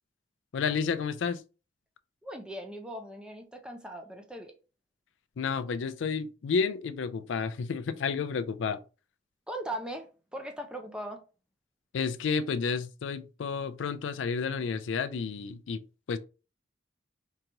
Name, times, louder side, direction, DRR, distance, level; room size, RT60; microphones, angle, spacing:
voice 1, 0.5-1.4 5.4-8.8 11.9-15.8 16.1-16.2, left 5 dB, 85° left, 0.4 m, -31 dB
voice 2, 2.2-4.5 9.5-11.2, right 1 dB, 5° right, 0.5 m, -39 dB
4.6 x 2.9 x 2.6 m
head